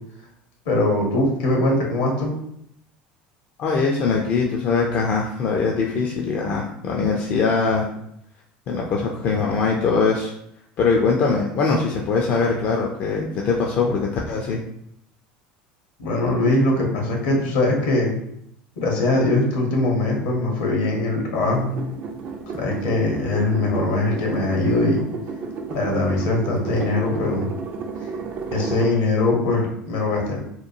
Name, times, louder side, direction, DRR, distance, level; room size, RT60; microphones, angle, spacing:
voice 1, 0.6-2.4 16.0-18.1 18.8-21.7 22.5-25.0 25.7-27.5 28.5-30.4, left 2 dB, 75° left, 0 dB, 0.9 m, -21 dB
voice 2, 3.6-7.9 8.7-10.3 10.8-14.6, left 4 dB, 50° left, -1 dB, 0.4 m, -22 dB
sound 1, 21.3-28.9, right 4 dB, 50° right, 0.5 m, -32 dB
2.9 x 2.2 x 2.6 m, 0.74 s
hypercardioid pair, 75°, 4 cm